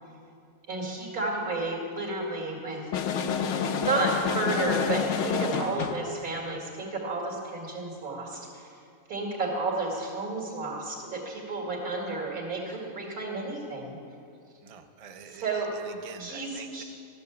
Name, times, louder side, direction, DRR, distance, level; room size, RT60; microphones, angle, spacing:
voice 1, 0.7-2.8 3.8-8.7 9.1-14.0 15.3-15.7 16.2-16.8, right 3 dB, 80° right, -2 dB, 2.5 m, -31 dB
sound 1, 2.9-6.1, left 7 dB, 65° left, 0.9 m, -28 dB
voice 2, 14.6-16.8, right 6 dB, 55° right, 6 dB, 0.4 m, -47 dB
13.0 x 6.7 x 6.9 m, 2.4 s
omnidirectional pair, 1.5 m